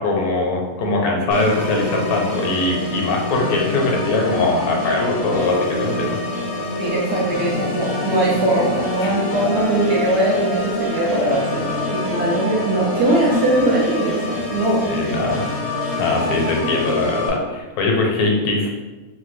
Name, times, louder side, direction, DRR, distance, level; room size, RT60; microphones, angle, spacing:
voice 1, 0.0-6.2 9.0-9.1 14.8-15.5 16.0-18.7, left 2 dB, 75° left, 0 dB, 1.1 m, -21 dB
Organ, 1.3-17.3, left 1 dB, 60° left, 0.8 m, -26 dB
voice 2, 6.8-14.9, right 1 dB, 60° right, -6 dB, 0.7 m, -20 dB
3.0 x 2.1 x 3.1 m, 1.2 s
omnidirectional pair, 1.6 m